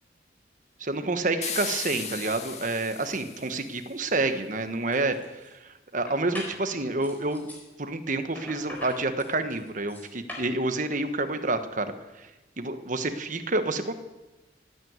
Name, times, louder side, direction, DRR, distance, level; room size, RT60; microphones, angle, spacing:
voice 1, 0.8-7.5 7.8-11.9 12.2-12.3 12.6-13.9, right 2 dB, 45° right, 9 dB, 1.3 m, -29 dB
sound 1, 1.4-3.8, left 6 dB, 35° left, 2.0 m, -36 dB
sound 2, 4.4-4.5 4.9-5.5 6.1-6.6 7.0-7.6 8.3-10.5, left 1 dB, 10° left, 4.2 m, -41 dB
15.5 x 9.4 x 9.5 m, 1.1 s
head